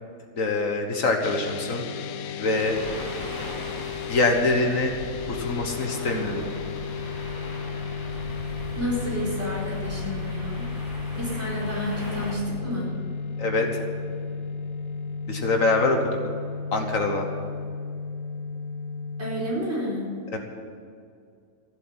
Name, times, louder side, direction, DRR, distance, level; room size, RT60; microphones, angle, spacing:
voice 1, 0.4-1.9 2.4-2.8 4.1-5.0 5.3-6.5 13.4-13.7 15.3-16.0 16.7-17.3 20.3-20.4, left 3 dB, 70° left, 3 dB, 1.7 m, -24 dB
sound 1, 1.2-19.5, left 5 dB, 90° left, 1.1 m, -33 dB
sound 2, 2.6-12.3, equal, 15° left, 2.6 m, -40 dB
voice 2, 8.8-10.6 11.1-12.9 19.2-20.1, equal, 50° right, -5 dB, 5.0 m, -30 dB
15.0 x 8.1 x 9.8 m, 2.3 s
omnidirectional pair, 1.4 m